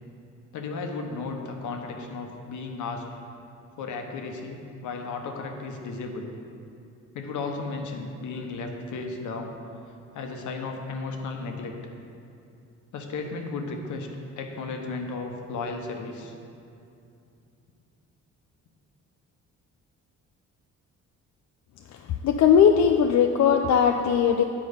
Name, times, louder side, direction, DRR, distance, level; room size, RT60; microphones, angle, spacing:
voice 1, 0.5-3.0 3.8-6.3 7.1-9.5 10.1-11.7 12.9-14.1 14.4-16.3, left 3 dB, 80° left, 3 dB, 1.0 m, -34 dB
voice 2, 22.2-24.4, left 7 dB, 65° left, 4 dB, 0.5 m, -19 dB
8.6 x 5.4 x 5.1 m, 2.6 s
cardioid pair, 90°, 30 cm